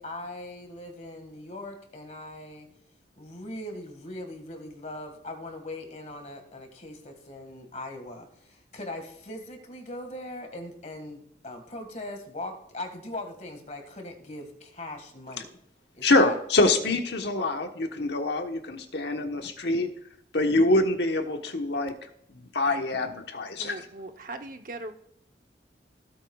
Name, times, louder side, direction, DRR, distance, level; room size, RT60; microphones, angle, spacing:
voice 1, 0.0-2.7 3.2-15.5 15.9-16.4, left 2 dB, 40° left, 5 dB, 1.9 m, -40 dB
voice 2, 16.0-19.9 20.3-21.9 22.3-23.8, left 2 dB, 70° left, 5 dB, 1.2 m, -25 dB
voice 3, 23.6-24.9, right 2 dB, 45° right, 7 dB, 0.9 m, -39 dB
16.5 x 8.3 x 2.4 m, 0.72 s
head